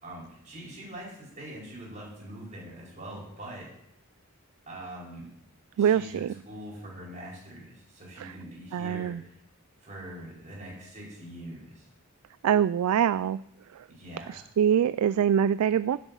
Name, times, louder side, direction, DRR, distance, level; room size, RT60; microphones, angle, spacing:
voice 1, 0.0-3.7 4.7-5.2 5.8-9.3 9.8-11.9 13.9-14.4, right 1 dB, 35° right, -5 dB, 5.2 m, -43 dB
voice 2, 5.8-6.3 8.2-8.3 8.7-9.2 12.4-13.4 13.7-13.8 14.3-16.0, right 8 dB, 80° right, 15 dB, 0.3 m, -24 dB
11.0 x 7.9 x 5.5 m, 0.77 s
head